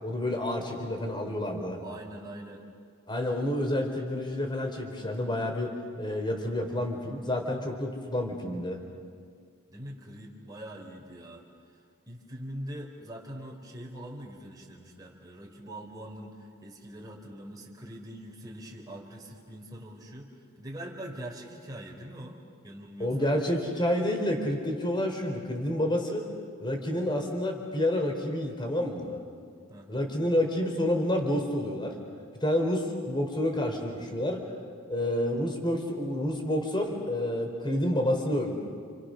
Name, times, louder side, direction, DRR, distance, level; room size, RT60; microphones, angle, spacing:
voice 1, 0.0-1.8 3.1-8.8 23.0-26.3 26.6-29.2 29.9-32.0 32.4-34.4 34.9-38.5, left 1 dB, 20° left, 3 dB, 4.0 m, -29 dB
voice 2, 1.8-2.6 9.7-11.4 12.1-20.3 20.6-22.4 22.6-23.3 29.7-30.1, right 1 dB, 20° right, -1 dB, 3.7 m, -43 dB
29.5 x 29.0 x 6.4 m, 2.1 s
head